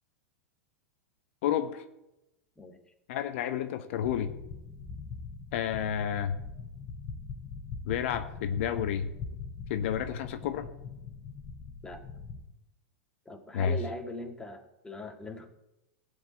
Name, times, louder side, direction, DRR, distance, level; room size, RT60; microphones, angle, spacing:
voice 1, 1.4-1.8 3.1-4.3 5.5-6.4 7.8-9.1 9.7-10.7 13.5-13.8, left 9 dB, 65° left, 9 dB, 1.0 m, -30 dB
sound 1, 4.0-12.4, left 4 dB, 40° left, 3.5 m, -42 dB
voice 2, 13.3-15.5, left 2 dB, 10° left, 4 dB, 1.9 m, -40 dB
15.5 x 5.2 x 8.6 m, 0.92 s
hypercardioid pair, 110°, 7 cm